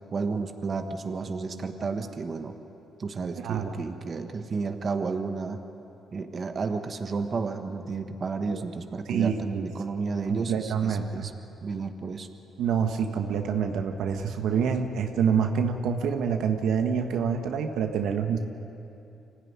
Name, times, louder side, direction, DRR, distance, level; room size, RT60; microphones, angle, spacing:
voice 1, 0.1-2.6 3.0-5.6 6.1-11.3 11.6-12.3, right 4 dB, 40° right, 6 dB, 1.4 m, -32 dB
voice 2, 3.4-3.8 8.5-8.6 9.1-9.6 10.3-11.3 12.6-18.4, right 7 dB, 80° right, 5 dB, 1.4 m, -27 dB
25.0 x 15.0 x 9.5 m, 2.9 s
cardioid pair, 90°, 0 cm